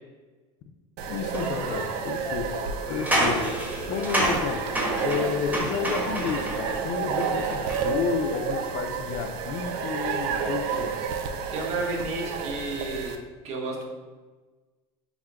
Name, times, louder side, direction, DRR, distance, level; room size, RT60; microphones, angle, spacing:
sound 1, 1.0-13.1, right 6 dB, 65° right, 0.5 m, -31 dB
voice 1, 1.1-3.6 3.9-4.7 5.0-11.0, left 7 dB, 55° left, 0.4 m, -31 dB
sound 2, 1.3-1.4 2.8-6.7 7.2-8.0, right 1 dB, 10° right, 1.1 m, -28 dB
sound 3, 1.4-8.8, left 2 dB, 25° left, 0.8 m, -41 dB
voice 2, 11.5-13.2 13.4-13.8, right 3 dB, 45° right, 1.1 m, -31 dB
5.8 x 2.2 x 3.6 m
supercardioid pair, 130°, 15 cm